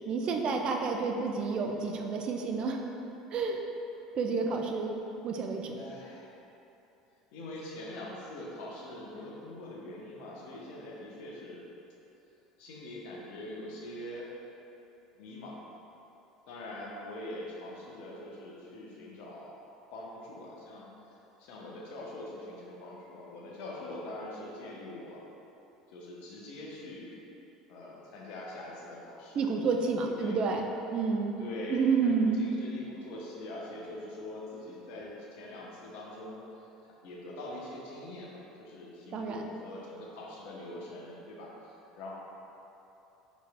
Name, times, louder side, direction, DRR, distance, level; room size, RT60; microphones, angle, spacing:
voice 1, 0.1-2.8 3.3-3.6 4.1-5.8 29.4-31.4 31.7-32.4 39.1-39.4, right 4 dB, 45° right, 3 dB, 0.4 m, -30 dB
voice 2, 5.7-6.4 7.3-11.7 12.6-14.3 15.2-15.6 16.5-19.5 19.9-25.2 25.9-27.2 27.7-29.5 30.0-30.4 31.4-42.1, left 1 dB, 60° left, -4 dB, 0.8 m, -43 dB
4.7 x 4.2 x 2.2 m, 3.0 s
figure-of-eight pair, 70°, 2 cm